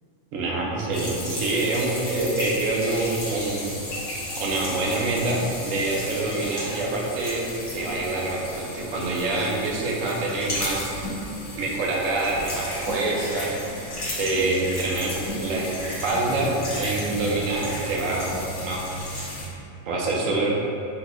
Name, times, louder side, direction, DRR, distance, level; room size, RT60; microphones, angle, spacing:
voice 1, 0.3-3.7 4.4-7.4 7.7-11.1 11.6-13.5 14.2-18.3 18.6-19.3 19.9-20.5, right 2 dB, 80° right, -2 dB, 1.0 m, -26 dB
sound 1, 0.9-19.5, left 1 dB, 65° left, 1.3 m, -34 dB
3.9 x 2.7 x 2.4 m, 2.7 s
omnidirectional pair, 1.4 m